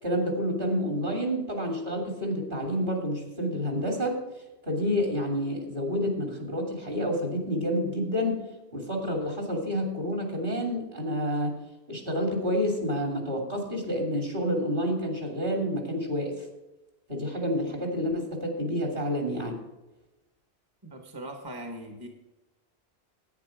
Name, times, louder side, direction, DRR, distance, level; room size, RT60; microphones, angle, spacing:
voice 1, 0.0-4.2 4.6-8.4 8.7-11.5 11.9-16.3 17.1-19.6, equal, 55° right, 2 dB, 3.0 m, -29 dB
voice 2, 20.8-22.1, right 1 dB, 20° right, 3 dB, 1.2 m, -40 dB
10.5 x 9.6 x 4.8 m, 1.1 s
omnidirectional pair, 1.1 m